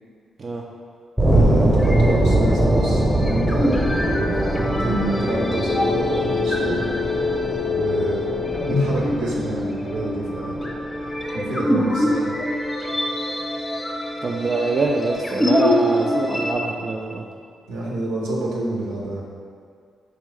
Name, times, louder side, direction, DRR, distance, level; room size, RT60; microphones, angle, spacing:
sound 1, 1.2-11.9, right 1 dB, 10° right, 0.7 m, -22 dB
voice 1, 1.3-3.9 4.1-6.8 7.7-8.2 8.6-10.6 11.3-12.3 17.7-19.2, right 1 dB, 85° right, -4 dB, 0.7 m, -28 dB
sound 2, 1.8-16.5, equal, 25° left, 0.6 m, -25 dB
sound 3, 5.4-9.6, left 5 dB, 80° left, 0.3 m, -26 dB
voice 2, 14.2-17.2, right 3 dB, 50° right, -1 dB, 0.3 m, -25 dB
3.7 x 3.0 x 3.2 m, 2.1 s
supercardioid pair, 45°, 0 cm